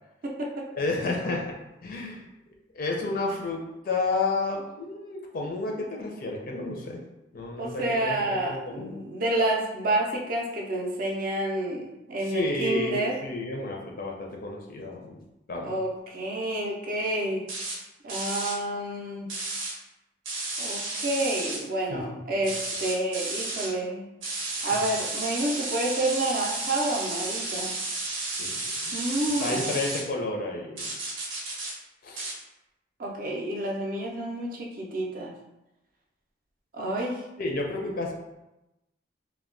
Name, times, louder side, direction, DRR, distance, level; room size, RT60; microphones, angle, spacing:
voice 1, 0.2-0.6 7.6-13.2 15.6-17.4 18.0-19.3 20.6-24.1 24.6-27.7 28.9-29.6 33.0-35.3 36.7-37.2, right 1 dB, 45° right, -1 dB, 0.4 m, -29 dB
voice 2, 0.7-1.4 1.8-2.2 2.7-7.0 7.3-9.0 12.3-15.2 15.5-15.8 21.9-22.2 28.3-28.9 29.4-30.9 32.0-32.3 37.4-38.1, left 3 dB, 45° left, 0 dB, 0.4 m, -31 dB
sound 1, 17.5-17.8 18.1-18.6 19.3-19.7 20.2-21.6 22.4-23.7 24.2-30.0 30.8-31.7 32.2-32.3, right 2 dB, 90° right, 0.8 m, -32 dB
2.2 x 2.1 x 3.7 m, 0.95 s
head